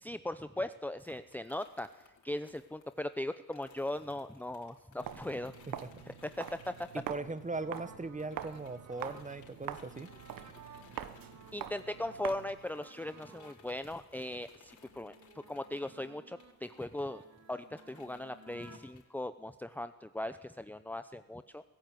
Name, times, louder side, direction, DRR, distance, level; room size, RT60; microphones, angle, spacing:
voice 1, 0.0-1.9 2.2-5.5 6.1-6.7 11.5-17.2 17.5-21.6, left 1 dB, 5° left, 11 dB, 0.8 m, -39 dB
sound 1, 1.0-7.9 8.2-19.0, left 6 dB, 60° left, 4.7 m, -62 dB
Walk footsteps, 5.0-12.6, right 10 dB, 75° right, 1.4 m, -45 dB
voice 2, 6.9-10.1, right 3 dB, 20° right, 13 dB, 1.5 m, -39 dB
sound 2, 7.5-13.7 14.1-18.9, right 4 dB, 50° right, 2.3 m, -57 dB
23.0 x 16.0 x 9.3 m, 1.1 s
cardioid pair, 85°, 34 cm